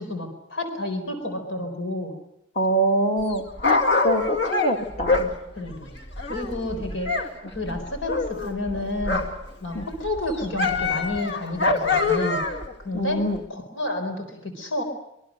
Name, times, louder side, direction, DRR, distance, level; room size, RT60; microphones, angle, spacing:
voice 1, 0.0-2.2 5.6-5.9 6.2-9.3 9.6-12.4 12.8-13.2 13.5-14.8, left 1 dB, 80° left, 6 dB, 4.3 m, -30 dB
voice 2, 2.6-5.3 9.7-9.9 12.9-13.4, right 1 dB, 35° left, 4 dB, 2.1 m, -25 dB
Dog, 3.2-7.3 7.5-9.5 9.8-12.7 13.3-13.4, left 3 dB, 60° left, 2.3 m, -25 dB
25.0 x 23.0 x 6.5 m, 0.81 s
head